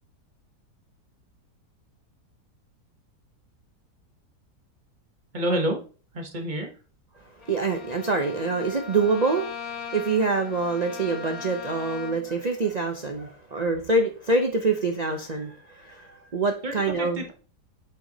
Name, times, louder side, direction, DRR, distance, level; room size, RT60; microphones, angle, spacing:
voice 1, 5.3-5.8 6.1-6.7 16.6-17.3, right 1 dB, 30° right, 3 dB, 1.2 m, -28 dB
Bowed string instrument, 7.4-12.4, left 6 dB, 60° left, 1.9 m, -39 dB
voice 2, 7.5-9.5 9.9-17.2, right 3 dB, 50° right, 4 dB, 0.5 m, -25 dB
8.0 x 4.7 x 3.9 m, 0.38 s
omnidirectional pair, 1.8 m